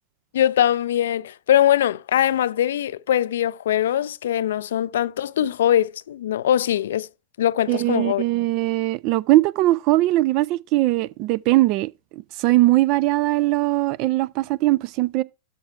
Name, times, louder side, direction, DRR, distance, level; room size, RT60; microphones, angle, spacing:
voice 1, 0.3-7.1 7.4-8.2, left 11 dB, 60° left, 0.3 m, -21 dB
voice 2, 7.7-15.2, right 17 dB, 40° right, 0.4 m, -20 dB
12.5 x 4.5 x 3.2 m
figure-of-eight pair, 90°, 0 cm